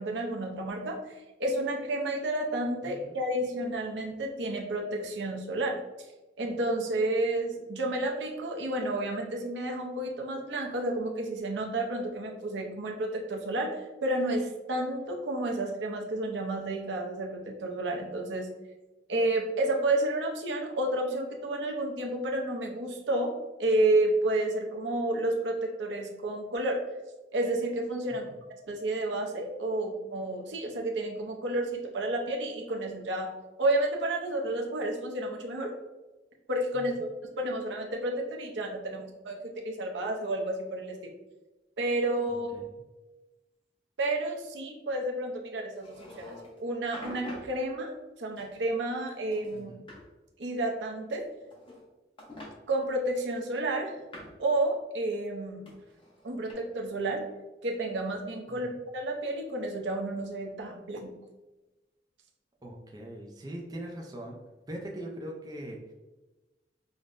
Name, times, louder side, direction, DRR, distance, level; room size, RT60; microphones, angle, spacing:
voice 1, 0.0-5.8 6.4-18.5 19.1-23.3 23.6-26.8 27.3-28.3 28.7-33.3 33.6-35.7 36.5-37.1 37.4-39.4 39.6-41.0 41.8-42.5 44.0-49.7 50.4-51.3 52.7-53.9 54.4-55.7 56.2-57.2 57.6-61.1, right 1 dB, 80° right, 1 dB, 0.6 m, -31 dB
voice 2, 2.8-3.1 28.1-28.3 36.7-37.0 42.3-42.7 49.5-49.9 58.5-58.8 62.6-64.4 64.7-65.9, right 1 dB, 20° right, 0 dB, 0.4 m, -42 dB
sound 1, 45.8-46.6 46.9-47.5 48.4-49.0 49.3-50.0 51.2-51.9 52.2-52.5 53.4-54.4 55.7-56.5, left 1 dB, 30° left, 0.7 m, -46 dB
5.1 x 2.1 x 2.5 m, 1.1 s
head